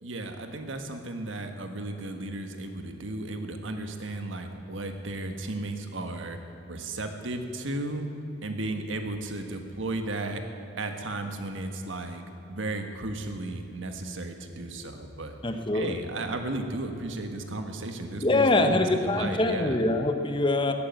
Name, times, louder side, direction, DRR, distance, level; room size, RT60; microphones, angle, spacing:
voice 1, 0.0-6.4 6.7-8.1 8.4-10.4 10.8-15.4 15.7-19.8, right 2 dB, 80° right, 6 dB, 1.5 m, -34 dB
voice 2, 15.4-16.0 18.2-20.7, left 2 dB, 25° left, 6 dB, 0.9 m, -24 dB
14.5 x 9.5 x 9.3 m, 3.0 s
head